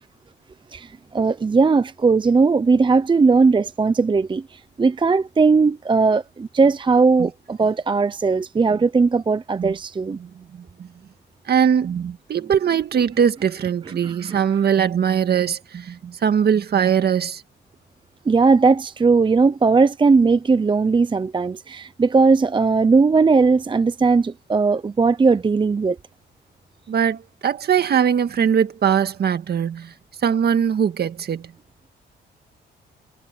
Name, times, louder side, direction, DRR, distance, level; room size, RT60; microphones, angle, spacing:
voice 1, 0.7-10.2 14.0-14.3 18.3-26.0, right 4 dB, 25° right, 0.7 m, -18 dB
voice 2, 10.2-10.9 11.5-17.4 26.9-29.9 30.2-31.5, right 8 dB, 55° right, 1.9 m, -21 dB
cardioid pair, 90°, 20 cm